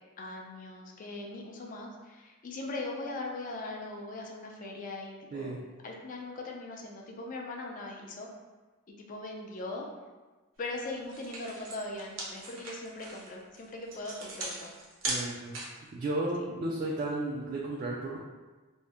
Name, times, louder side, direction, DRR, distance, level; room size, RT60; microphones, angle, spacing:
voice 1, 0.2-5.6 5.8-8.3 8.9-9.9 10.6-14.7, left 2 dB, 40° left, 0 dB, 0.4 m, -40 dB
voice 2, 5.3-5.6 15.1-15.6 15.9-18.2, right 2 dB, 40° right, -4 dB, 0.3 m, -33 dB
sound 1, 10.7-10.8 11.1-15.9, right 2 dB, 70° right, 0.7 m, -38 dB
2.7 x 2.0 x 3.4 m, 1.3 s
head